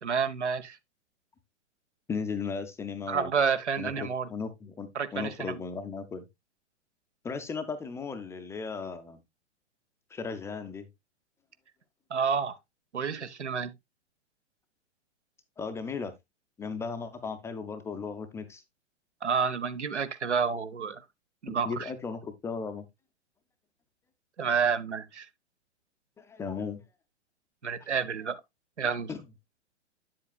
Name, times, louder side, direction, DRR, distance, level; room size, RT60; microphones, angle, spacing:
voice 1, 0.0-0.8 3.1-4.3 4.9-5.5 12.1-12.6 12.9-13.7 19.2-21.0 21.4-21.9 24.4-25.3 27.6-28.4 28.8-29.1, right 6 dB, 80° right, 0.9 m, -29 dB
voice 2, 2.1-3.3 3.8-6.2 7.2-9.2 10.1-10.9 15.6-16.1 16.6-18.6 21.5-22.9 26.2-26.8 29.1-29.2, left 5 dB, 10° left, 0.4 m, -36 dB
8.6 x 7.6 x 2.3 m
figure-of-eight pair, 105°, 35 cm